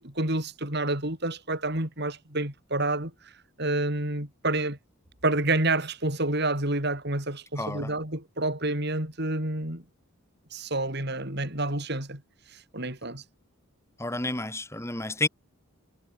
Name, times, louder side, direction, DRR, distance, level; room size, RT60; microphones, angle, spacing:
voice 1, 0.0-3.1 3.6-4.8 5.2-9.8 10.5-12.2 12.7-13.2, right 2 dB, 50° right, 6.7 m, -28 dB
voice 2, 7.6-7.9 14.0-15.3, left 2 dB, 15° left, 4.0 m, -30 dB
head